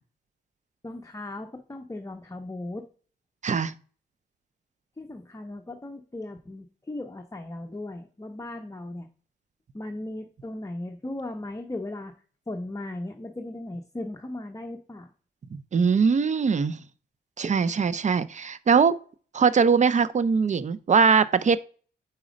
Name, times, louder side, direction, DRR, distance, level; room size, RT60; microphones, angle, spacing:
voice 1, 0.8-2.9 5.0-9.1 9.7-12.1 12.5-15.1 17.5-17.8, left 1 dB, 15° left, 0.7 m, -37 dB
voice 2, 3.4-3.7 15.5-16.8 17.4-19.0 19.3-21.6, right 5 dB, 40° right, 0.5 m, -21 dB
4.8 x 4.2 x 5.0 m
cardioid pair, 70°, 19 cm